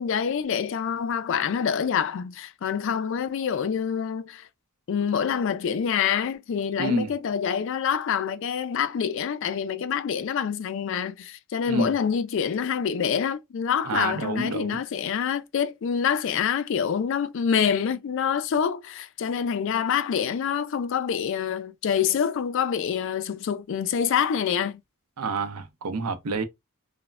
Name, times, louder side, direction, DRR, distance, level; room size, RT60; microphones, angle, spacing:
voice 1, 0.0-4.4 4.9-24.8, left 7 dB, 55° left, 0.3 m, -26 dB
voice 2, 6.8-7.1 11.7-11.9 13.8-14.8 25.2-26.4, right 3 dB, 90° right, 0.6 m, -28 dB
3.0 x 2.1 x 2.3 m
head